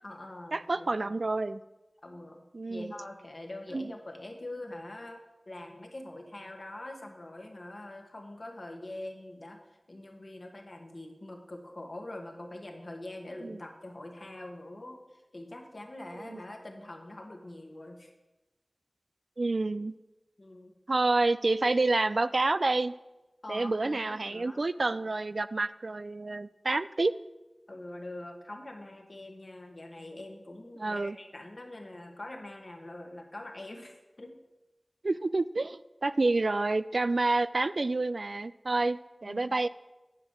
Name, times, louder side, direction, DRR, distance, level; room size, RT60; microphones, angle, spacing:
voice 1, 0.0-1.0 2.0-2.4 2.7-5.2 5.5-9.6 9.9-18.1 20.4-20.7 23.4-24.6 27.7-34.4 39.2-39.5, left 1 dB, 60° left, 3 dB, 1.6 m, -44 dB
voice 2, 0.5-1.6 2.5-2.9 3.7-3.9 13.4-13.6 16.2-16.4 19.4-19.9 20.9-22.9 23.5-27.1 30.8-31.2 35.0-39.7, right 2 dB, 75° right, 15 dB, 0.3 m, -28 dB
9.5 x 5.2 x 7.4 m, 1.0 s
wide cardioid pair, 50°, 0 cm